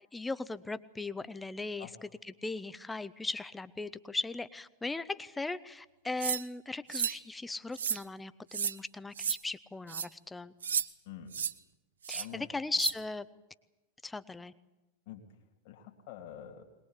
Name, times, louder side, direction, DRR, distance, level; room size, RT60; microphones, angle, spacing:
voice 1, 0.1-10.5 12.1-13.3 14.0-14.5, left 3 dB, 10° left, 15 dB, 0.8 m, -38 dB
sound 1, 6.2-6.4 6.9-7.2 7.7-8.0 8.5-8.8 9.2-9.4 9.9-10.1 10.6-10.9 11.3-11.5 12.0-12.3 12.8-12.9, right 8 dB, 65° right, 0.7 m, -32 dB
voice 2, 11.1-11.4 12.1-12.5 15.1-15.2 15.6-16.6, left 10 dB, 45° left, 2 dB, 2.6 m, -46 dB
21.5 x 21.0 x 8.3 m, 1.0 s
figure-of-eight pair, 90°, 0 cm